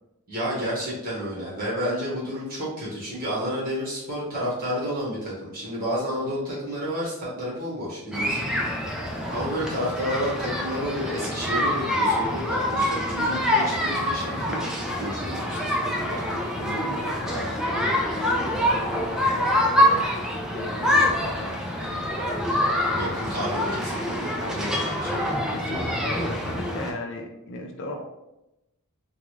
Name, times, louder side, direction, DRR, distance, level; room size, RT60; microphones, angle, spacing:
voice 1, 0.3-8.4 9.3-14.6 15.0-16.2 23.0-25.5, equal, 40° right, -6 dB, 1.4 m, -30 dB
sound 1, 8.1-26.9, left 1 dB, 5° right, 0.4 m, -25 dB
voice 2, 16.1-20.2 20.5-22.1 24.4-24.7 25.5-28.0, left 1 dB, 55° left, 2 dB, 0.5 m, -37 dB
3.7 x 2.3 x 3.1 m, 0.91 s
head